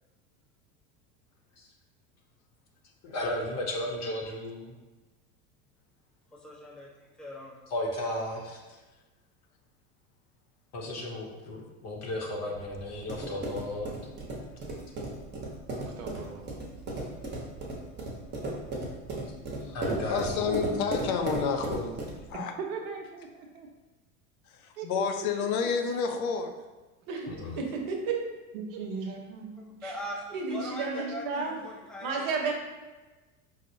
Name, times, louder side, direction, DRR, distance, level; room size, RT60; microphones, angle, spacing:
voice 1, 3.0-4.7 7.7-8.6 10.7-13.9 19.7-20.9 27.3-27.6, left 1 dB, 40° left, -1 dB, 0.7 m, -34 dB
voice 2, 6.4-7.6 29.7-32.3, equal, ahead, -3 dB, 0.5 m, -41 dB
sound 1, 12.6-22.3, right 2 dB, 25° right, 0.8 m, -36 dB
voice 3, 15.8-16.7 22.6-23.7 24.8-25.3 25.6-25.7 28.5-29.8 30.4-31.6, right 4 dB, 80° right, 1 dB, 0.7 m, -40 dB
voice 4, 20.1-22.0 22.3-22.5 24.5-26.5, left 6 dB, 85° left, 5 dB, 0.6 m, -30 dB
voice 5, 27.1-28.2 29.8-29.9 30.3-31.5 32.0-32.5, right 4 dB, 50° right, 1 dB, 0.9 m, -32 dB
4.8 x 2.1 x 2.6 m, 1.2 s
supercardioid pair, 105°, 42 cm